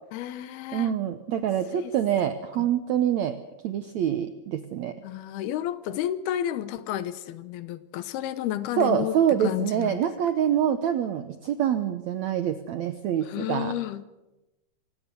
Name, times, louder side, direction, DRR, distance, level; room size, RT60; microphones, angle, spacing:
voice 1, 0.1-0.9 1.7-1.9 5.0-10.0 13.3-14.0, left 12 dB, 80° left, 2.9 m, -31 dB
voice 2, 0.7-3.4 3.6-4.9 8.8-13.7, right 9 dB, 80° right, 1.6 m, -26 dB
25.5 x 17.0 x 6.9 m
omnidirectional pair, 4.4 m